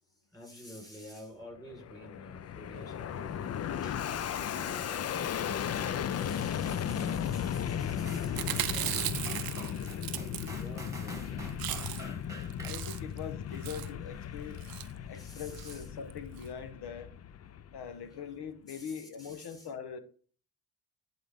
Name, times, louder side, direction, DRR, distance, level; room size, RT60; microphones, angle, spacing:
voice 1, 0.3-9.6 10.1-10.2 10.4-11.5 11.9-12.0 12.4-12.5 12.9-13.0 15.1-15.9 18.7-19.7, left 1 dB, 10° left, 4.0 m, -50 dB
Fixed-wing aircraft airplane, 1.6-18.2, left 9 dB, 40° left, 0.4 m, -36 dB
sound 1, 8.1-13.9 14.4-14.5, right 1 dB, 10° right, 1.7 m, -46 dB
Chewing mastication, 8.2-10.9 11.2-11.3 11.5-12.2 12.5-13.2 13.6-13.9 14.6-14.9 15.5-15.8 16.1-16.2 16.4-16.5, right 13 dB, 60° right, 0.5 m, -37 dB
voice 2, 12.6-14.6 15.1-17.1 17.7-20.0, left 7 dB, 75° left, 1.1 m, -42 dB
11.0 x 3.9 x 3.5 m
cardioid pair, 85°, 40 cm